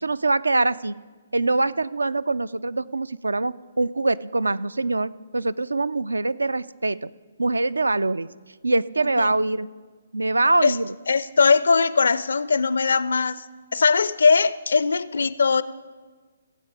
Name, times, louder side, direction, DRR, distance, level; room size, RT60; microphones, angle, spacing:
voice 1, 0.0-0.9 1.3-7.1 7.4-8.3 8.6-9.7 10.1-10.8, right 2 dB, 75° right, 18 dB, 0.3 m, -23 dB
voice 2, 11.1-13.4 13.7-15.6, left 5 dB, 60° left, 17 dB, 0.4 m, -20 dB
16.5 x 7.5 x 4.8 m, 1.4 s
figure-of-eight pair, 130°, 0 cm